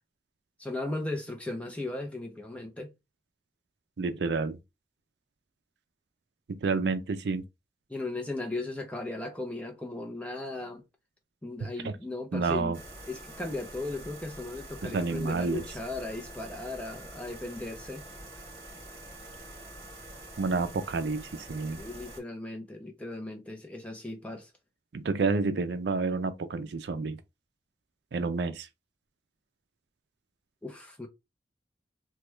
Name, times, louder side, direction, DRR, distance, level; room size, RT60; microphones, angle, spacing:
voice 1, 0.6-2.9 7.9-10.8 11.4-12.8 13.1-18.0 21.8-24.5 30.6-31.1, left 2 dB, 5° left, 0.5 m, -37 dB
voice 2, 4.0-4.6 6.5-7.4 11.8-11.9 12.3-12.8 14.8-15.6 20.4-21.8 24.9-27.2 28.1-28.7, right 4 dB, 70° right, 0.4 m, -29 dB
sound 1, 12.7-22.2, right 1 dB, 55° right, 1.3 m, -46 dB
3.1 x 2.3 x 3.1 m
head